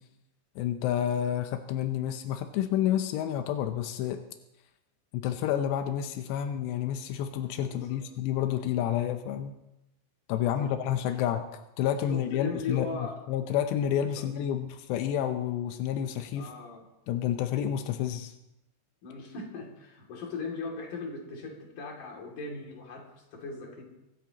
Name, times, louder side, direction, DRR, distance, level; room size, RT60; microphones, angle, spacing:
voice 1, 0.6-4.2 5.1-9.5 10.3-11.4 11.8-12.9 13.3-16.5 17.1-18.3, left 10 dB, 85° left, 7 dB, 2.4 m, -29 dB
voice 2, 7.7-8.0 10.4-10.7 12.1-13.2 14.2-14.3 16.3-16.8 19.0-23.8, left 4 dB, 45° left, -1 dB, 3.5 m, -39 dB
24.0 x 13.5 x 3.0 m, 0.91 s
omnidirectional pair, 5.9 m